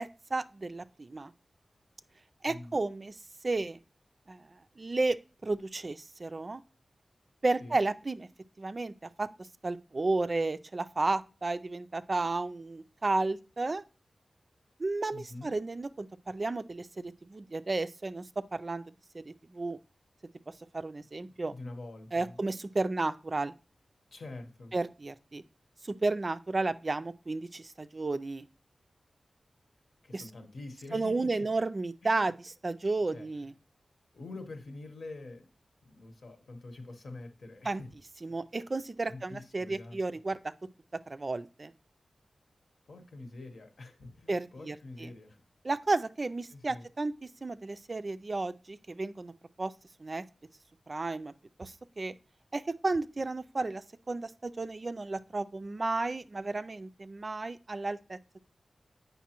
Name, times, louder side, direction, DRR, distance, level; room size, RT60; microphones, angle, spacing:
voice 1, 0.0-1.3 2.4-3.1 3.4-3.8 4.3-4.4 4.8-5.2 5.4-6.6 7.4-8.3 8.6-9.3 9.6-13.8 14.8-18.2 18.5-18.8 19.1-19.8 20.7-21.5 22.1-23.5 24.7-25.4 25.8-28.5 30.1-30.2 30.9-33.5 37.7-37.8 38.2-40.5 41.1-41.7 44.3-45.1 45.6-47.1 47.4-49.3 49.6-49.7 50.0-50.2 50.9-51.3 51.6-52.1 52.5-58.4, right 3 dB, 40° right, 0.3 m, -33 dB
voice 2, 15.1-15.5 21.5-22.4 24.1-24.7 30.0-31.5 32.0-32.3 33.1-33.3 34.1-35.5 35.8-37.9 38.3-38.4 39.0-40.0 42.9-45.4 46.5-46.9, left 2 dB, 75° left, 1.0 m, -46 dB
8.2 x 5.3 x 2.9 m
wide cardioid pair, 105°, 0 cm